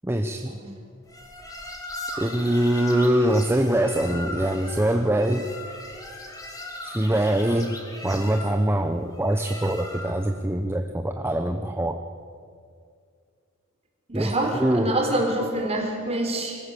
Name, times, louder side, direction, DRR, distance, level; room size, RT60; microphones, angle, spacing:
voice 1, 0.0-0.6 2.2-5.5 6.8-7.8 8.0-12.0 14.1-14.3 14.6-15.0, right 1 dB, 10° right, 6 dB, 0.8 m, -23 dB
sound 1, 1.1-10.3, left 1 dB, 15° left, 2.9 m, -38 dB
voice 2, 14.1-16.6, right 1 dB, 30° right, 1 dB, 4.3 m, -26 dB
24.5 x 14.5 x 8.6 m, 2.2 s
head